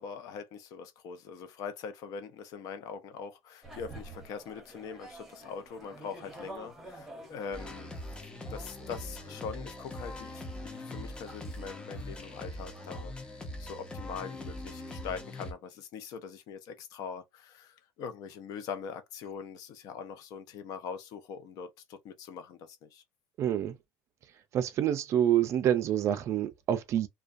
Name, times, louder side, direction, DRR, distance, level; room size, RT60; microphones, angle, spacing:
voice 1, 0.0-7.9 8.2-13.1 13.6-23.0, left 6 dB, 60° left, 0.6 m, -42 dB
sound 1, 3.6-13.0, right 1 dB, ahead, 1.1 m, -50 dB
sound 2, 7.5-15.5, left 1 dB, 15° left, 0.6 m, -42 dB
voice 2, 23.4-23.7 24.5-27.1, right 10 dB, 45° right, 0.4 m, -27 dB
2.3 x 2.2 x 2.5 m
cardioid pair, 130°, 7 cm